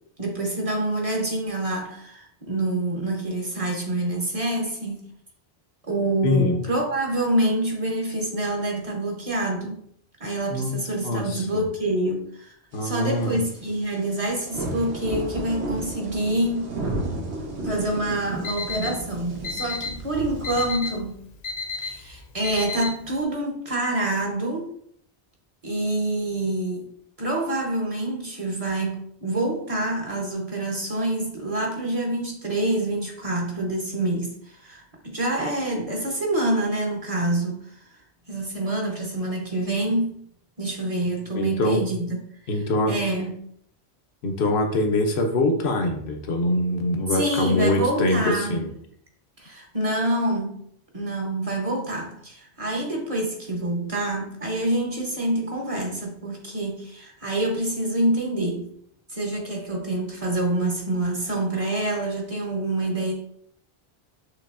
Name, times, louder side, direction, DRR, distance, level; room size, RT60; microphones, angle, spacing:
voice 1, 0.2-5.0 5.8-9.8 10.2-12.5 12.8-16.7 17.6-21.2 21.8-24.7 25.6-26.9 27.2-37.9 38.3-40.2 40.6-42.2 42.5-43.4 47.1-48.7 49.4-50.6 50.9-58.7 59.1-63.1, right 1 dB, 35° right, 0 dB, 0.9 m, -26 dB
voice 2, 6.2-6.6 10.5-10.8 11.0-11.7 12.7-13.4 41.3-41.8 42.5-42.9 44.2-48.7, left 2 dB, 70° left, 4 dB, 1.0 m, -23 dB
sound 1, 12.7-20.7, right 2 dB, 85° right, 1.3 m, -33 dB
Alarm, 18.2-23.2, left 4 dB, 50° left, 0.5 m, -33 dB
6.6 x 3.0 x 2.5 m, 0.67 s
omnidirectional pair, 1.1 m